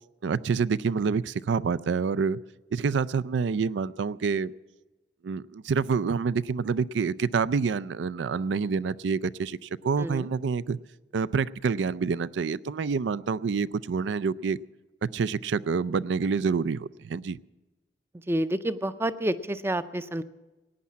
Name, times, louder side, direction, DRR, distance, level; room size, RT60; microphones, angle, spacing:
voice 1, 0.2-2.4 2.7-4.5 5.2-10.8 11.1-14.6 15.0-17.4, right 5 dB, 75° right, 19 dB, 0.4 m, -27 dB
voice 2, 18.3-20.2, right 1 dB, 15° right, 13 dB, 0.5 m, -29 dB
17.5 x 9.5 x 7.2 m, 1.1 s
head